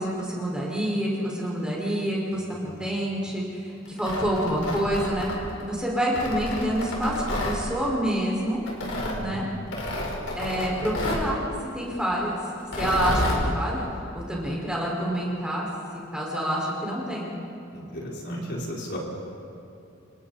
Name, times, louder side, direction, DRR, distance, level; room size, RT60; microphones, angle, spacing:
voice 1, 0.0-5.3 5.6-8.6 9.2-9.5 10.3-12.4 12.8-13.8 14.1-15.7 16.1-17.3, equal, 5° right, -4 dB, 5.3 m, -27 dB
voice 2, 2.3-2.8 9.0-9.5 17.7-19.0, equal, 55° left, -3 dB, 4.4 m, -35 dB
Tearing, 3.9-5.6 6.1-7.6 8.7-9.2 9.7-11.3 12.6-13.4, left 1 dB, 85° left, 4.8 m, -30 dB
29.5 x 26.5 x 4.3 m, 2.7 s
head